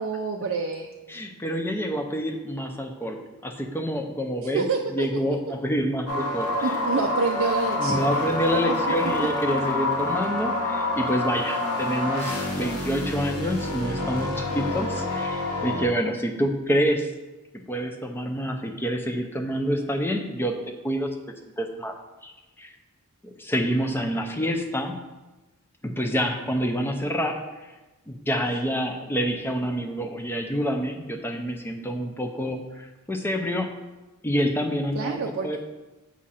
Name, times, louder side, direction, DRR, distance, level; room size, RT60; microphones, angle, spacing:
voice 1, 0.0-0.9 4.5-5.1 6.6-8.4 8.6-8.7 35.0-35.6, right 4 dB, 60° right, 2 dB, 0.4 m, -28 dB
voice 2, 1.1-4.6 4.9-6.7 7.8-17.1 17.5-20.5 20.8-21.1 21.6-21.9 22.2-22.3 22.6-22.7 23.4-25.0 25.8-27.7 28.1-33.7 34.2-35.6, equal, 10° left, 3 dB, 0.5 m, -27 dB
sound 1, 6.1-15.9, left 2 dB, 85° left, 1.1 m, -27 dB
7.3 x 2.5 x 5.6 m, 1.1 s
head